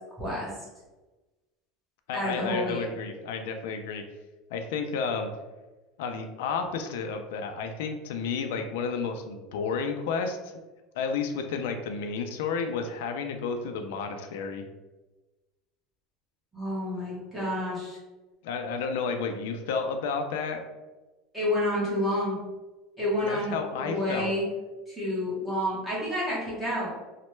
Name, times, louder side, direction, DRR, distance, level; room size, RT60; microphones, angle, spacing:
voice 1, 0.2-0.5 2.1-2.9 16.5-18.0 21.3-22.4 23.0-24.4 24.9-26.9, left 1 dB, ahead, -8 dB, 1.0 m, -29 dB
voice 2, 2.1-4.0 4.5-5.3 6.0-10.5 10.9-14.6 18.4-20.6 23.2-24.3, left 5 dB, 90° left, 5 dB, 0.3 m, -31 dB
3.1 x 2.1 x 3.0 m, 1.1 s
cardioid pair, 175°, 0 cm